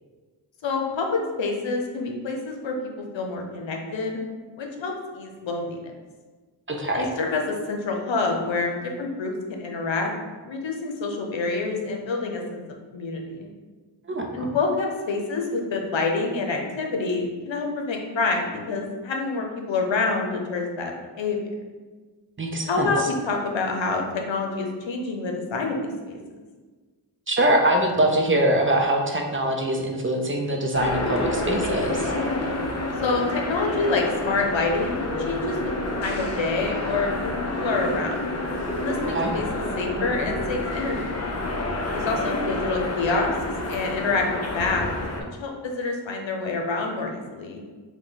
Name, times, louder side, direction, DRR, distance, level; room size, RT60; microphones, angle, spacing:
voice 1, 0.6-4.2 4.6-5.9 6.9-10.1 10.4-12.6 12.9-13.5 14.3-21.4 22.7-26.2 33.0-35.7 36.0-38.1 38.8-39.5 39.8-41.0 41.9-43.3 43.7-44.8 45.4-47.6, left 3 dB, 85° left, 1 dB, 0.8 m, -27 dB
voice 2, 6.7-7.1 14.1-14.5 22.4-22.9 27.3-32.1 39.1-39.3, right 1 dB, 30° right, 2 dB, 0.5 m, -23 dB
sound 1, 30.7-45.2, left 1 dB, 35° left, 0.6 m, -29 dB
4.9 x 2.3 x 3.9 m, 1.4 s
wide cardioid pair, 110°, 44 cm